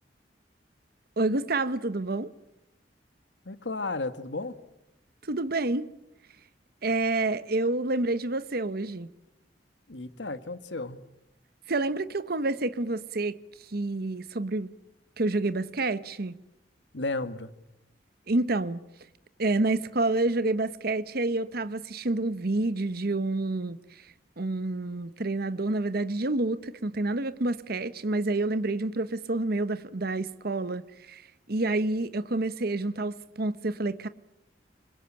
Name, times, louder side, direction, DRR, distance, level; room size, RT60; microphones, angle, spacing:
voice 1, 1.2-2.3 5.2-5.9 6.8-9.1 11.7-13.4 13.7-14.7 15.2-16.3 18.3-18.8 19.4-31.2 31.5-34.1, right 2 dB, 60° right, 1.0 m, -28 dB
voice 2, 3.4-4.5 9.9-11.0 16.9-17.5, left 3 dB, 90° left, 1.7 m, -33 dB
26.0 x 22.0 x 9.0 m
head